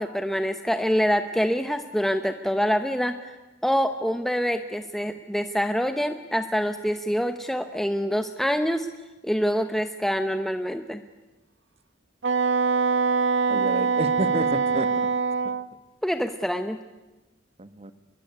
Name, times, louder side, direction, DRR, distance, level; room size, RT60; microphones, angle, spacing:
voice 1, 0.0-3.3 3.6-8.9 9.2-11.0 16.0-16.8, equal, ahead, 7 dB, 0.9 m, -25 dB
Wind instrument woodwind instrument, 12.2-15.7, right 5 dB, 75° right, 1.0 m, -23 dB
voice 2, 13.5-15.1 17.6-17.9, right 1 dB, 35° right, 11 dB, 1.3 m, -30 dB
25.0 x 22.5 x 9.5 m, 1.1 s
head